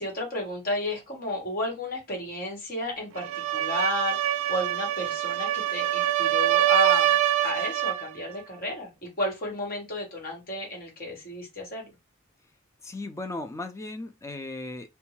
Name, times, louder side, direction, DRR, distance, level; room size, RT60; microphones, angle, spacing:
voice 1, 0.0-3.3 3.5-4.2 4.5-7.2 7.4-11.9, left 1 dB, 45° left, 1.3 m, -32 dB
sound 1, 3.2-8.1, right 13 dB, 90° right, 0.3 m, -25 dB
voice 2, 12.8-14.9, left 2 dB, 15° left, 0.3 m, -36 dB
2.6 x 2.2 x 2.9 m
head